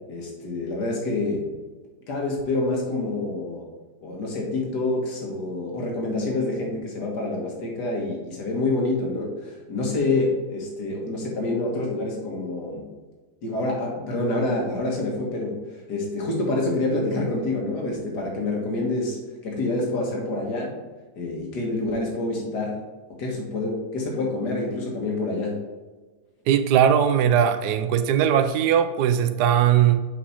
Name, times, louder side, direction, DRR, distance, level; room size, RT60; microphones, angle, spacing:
voice 1, 0.1-1.6 2.1-3.7 4.0-12.9 13.4-15.6 15.9-20.8 21.2-22.8 23.1-25.6, left 2 dB, 85° left, -1 dB, 2.1 m, -27 dB
voice 2, 26.5-30.0, right 9 dB, 80° right, 10 dB, 1.2 m, -19 dB
6.8 x 5.0 x 4.2 m, 1.3 s
omnidirectional pair, 1.7 m